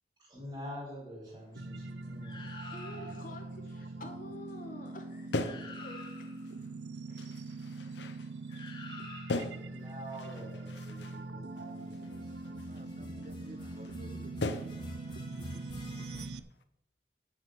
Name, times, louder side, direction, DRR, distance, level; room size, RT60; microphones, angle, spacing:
voice 1, 0.2-3.2 9.7-11.0 11.3-12.6 13.0-13.7, equal, 25° right, -5 dB, 4.3 m, -47 dB
sound 1, 1.6-16.4, right 2 dB, 85° right, 0.7 m, -43 dB
sound 2, 2.2-3.4 5.0-5.1 5.4-6.5 8.5-9.7 12.0-16.3, left 2 dB, 25° left, 1.7 m, -48 dB
voice 2, 2.7-6.3 7.1-7.3 7.7-7.8, left 1 dB, 50° left, 3 dB, 1.9 m, -49 dB
sound 3, 5.3-6.8 7.2-8.9 9.3-11.3 11.6-12.9 13.2-13.3 13.9-14.0 14.4-15.0 15.3-15.8 16.1-16.6, left 2 dB, 90° left, 0.9 m, -40 dB
voice 3, 12.4-15.3, right 1 dB, 40° right, 10 dB, 0.8 m, -54 dB
10.5 x 7.3 x 6.5 m, 0.88 s
head